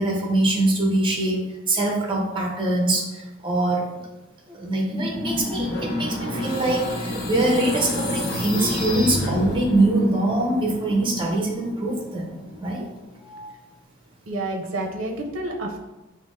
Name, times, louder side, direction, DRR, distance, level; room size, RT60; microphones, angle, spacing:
voice 1, 0.0-3.8 4.5-12.3 12.6-12.9, right 1 dB, 25° right, -1 dB, 0.7 m, -23 dB
sound 1, 5.0-13.2, left 1 dB, 5° left, 0.4 m, -32 dB
sound 2, 5.7-9.9, left 1 dB, 50° left, 0.6 m, -30 dB
voice 2, 13.1-13.6 14.3-15.8, right 2 dB, 65° right, 1 dB, 0.6 m, -30 dB
5.5 x 2.0 x 2.5 m, 1.1 s
head